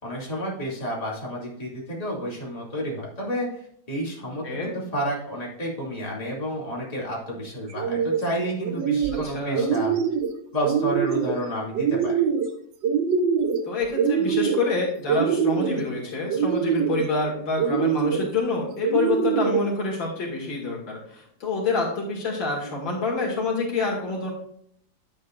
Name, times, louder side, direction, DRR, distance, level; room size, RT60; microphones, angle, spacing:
voice 1, 0.0-3.6 3.9-10.0 10.5-12.1, equal, 20° left, -4 dB, 2.6 m, -30 dB
sound 1, 7.7-8.2 8.6-9.3 9.5-10.3 10.6-11.3 11.7-12.5 12.8-13.6 13.9-14.7 15.1-15.8 16.3-17.0 17.6-18.3 18.8-19.6, right 7 dB, 75° right, 1.6 m, -23 dB
voice 2, 9.2-9.7 13.6-24.3, left 3 dB, 80° left, -2 dB, 3.1 m, -27 dB
10.0 x 8.1 x 2.5 m, 0.65 s
omnidirectional pair, 2.1 m